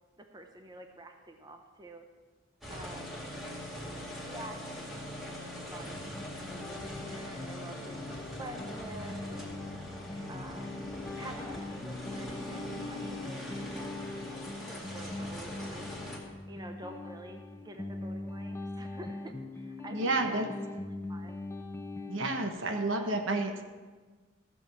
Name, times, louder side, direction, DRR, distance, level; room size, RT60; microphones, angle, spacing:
voice 1, 0.2-2.1 2.7-3.2 4.2-9.5 10.3-10.8 11.1-13.9 14.2-15.8 16.4-20.4 21.1-21.4 22.6-23.3, right 1 dB, 20° right, 4 dB, 0.8 m, -48 dB
sound 1, 2.6-16.2, equal, ahead, 2.3 m, -42 dB
sound 2, 5.9-22.5, left 2 dB, 15° left, 0.6 m, -42 dB
voice 2, 19.9-20.5 22.1-23.6, right 2 dB, 75° right, 5 dB, 1.2 m, -30 dB
13.5 x 7.0 x 6.2 m, 1.4 s
head